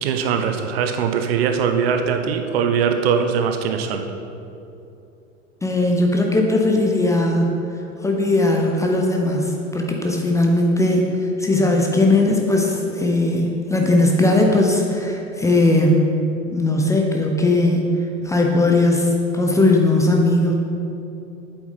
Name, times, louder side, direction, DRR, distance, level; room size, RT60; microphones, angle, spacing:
voice 1, 0.0-4.0, right 7 dB, 50° right, 6 dB, 0.8 m, -21 dB
voice 2, 5.6-7.5 8.0-11.1 11.4-16.2 16.5-17.9 18.2-20.5, left 2 dB, 10° left, 1 dB, 0.7 m, -18 dB
8.4 x 8.0 x 4.2 m, 2.8 s
figure-of-eight pair, 90°, 39 cm